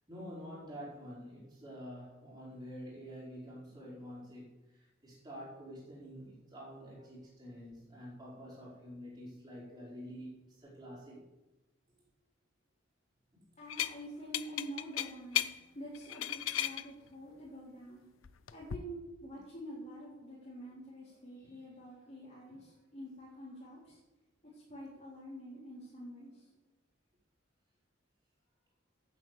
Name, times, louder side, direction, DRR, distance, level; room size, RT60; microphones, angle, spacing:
voice 1, 0.1-4.5 5.0-11.2 21.4-21.5 22.5-22.6, equal, 20° right, -7 dB, 4.8 m, -48 dB
voice 2, 13.6-15.5 15.7-18.1 18.5-24.0 24.5-26.4, equal, 35° left, -8 dB, 3.8 m, -47 dB
sound 1, 13.7-13.9 14.3-15.5 15.9-16.8 18.2-18.8, left 11 dB, 90° left, 0.5 m, -34 dB
9.4 x 8.0 x 8.2 m, 1.0 s
head